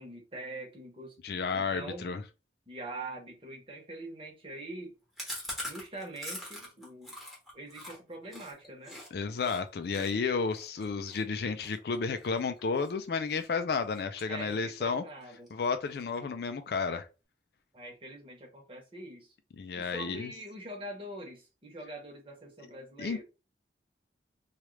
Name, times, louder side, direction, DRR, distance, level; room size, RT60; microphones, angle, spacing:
voice 1, 0.0-1.1 1.5-2.1 2.7-5.0 5.7-7.2 7.5-9.0 14.3-15.5 17.7-19.3 19.7-23.2, right 1 dB, 30° right, 1.0 m, -44 dB
voice 2, 1.2-2.2 9.1-15.0 15.5-17.1 19.6-20.3 23.0-23.2, left 5 dB, 60° left, 0.4 m, -32 dB
Chewing mastication, 5.2-9.1 9.4-9.6 9.9-12.9 13.3-13.6 13.9-14.8 15.1-15.2 15.5-15.6 15.9-16.4, left 1 dB, ahead, 0.9 m, -43 dB
3.0 x 2.4 x 3.2 m
head